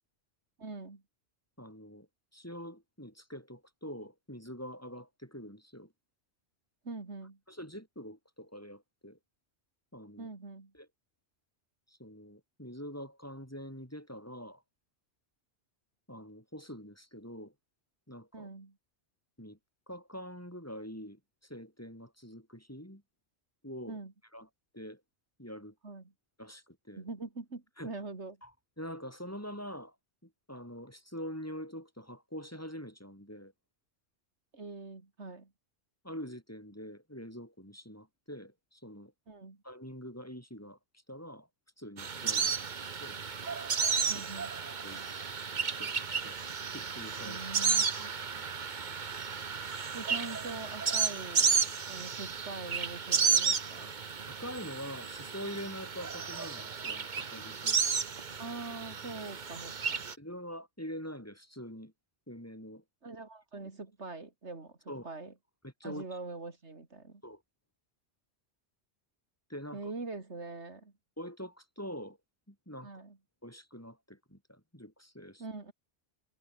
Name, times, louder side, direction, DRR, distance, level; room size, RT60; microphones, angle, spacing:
voice 1, 0.6-1.0 6.8-7.4 10.2-10.7 18.3-18.7 23.9-24.1 25.8-26.1 27.0-28.4 34.5-35.5 39.3-39.6 42.2-42.6 44.1-44.5 47.2-48.4 49.9-51.5 51.9-53.9 58.4-60.1 63.0-64.8 65.0-65.3 65.8-67.2 69.7-70.9 72.8-73.2 75.4-75.7, right 3 dB, 85° right, 3.3 m, -43 dB
voice 2, 1.6-2.1 2.3-5.9 7.5-9.2 9.9-10.3 10.7-10.9 11.9-14.6 16.1-17.5 18.1-18.5 19.4-19.6 19.9-23.0 23.6-24.0 24.3-24.5 24.7-25.0 25.4-25.7 26.4-27.0 27.8-27.9 28.4-28.5 28.8-29.9 30.2-33.5 36.0-39.1 39.6-40.8 41.1-41.5 41.8-42.5 42.8-43.2 44.0-44.2 44.8-45.0 45.8-45.9 46.3-46.4 46.7-47.4 48.3-48.5 53.8-53.9 54.3-57.8 59.6-59.7 60.2-61.9 62.3-62.8 63.6-63.7 64.9-65.1 65.6-66.0 67.2-67.4 69.5-69.8 71.2-72.2 72.5-73.0 73.4-75.4, equal, 15° left, 5.6 m, -45 dB
sound 1, 42.0-60.1, right 6 dB, 45° right, 1.1 m, -33 dB
omnidirectional pair, 1.1 m